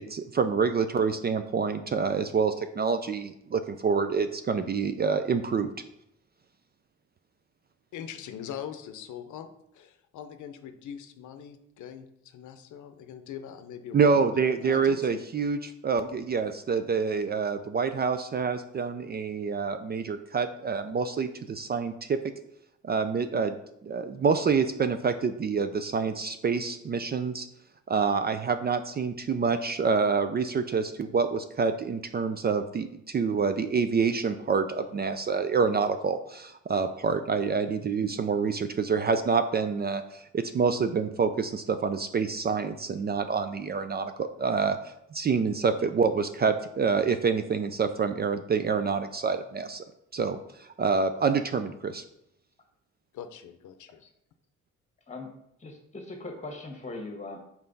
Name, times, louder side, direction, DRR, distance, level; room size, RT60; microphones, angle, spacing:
voice 1, 0.0-5.7 13.9-22.2 22.8-23.6 23.8-27.5 27.9-49.8 50.1-52.0, right 5 dB, 35° right, 10 dB, 0.4 m, -27 dB
voice 2, 7.9-9.5 9.7-15.2 53.1-54.0, left 9 dB, 75° left, 8 dB, 0.7 m, -42 dB
voice 3, 55.6-57.4, left 2 dB, 20° left, 3 dB, 1.6 m, -40 dB
5.5 x 4.6 x 3.9 m, 0.77 s
cardioid pair, 90°, 30 cm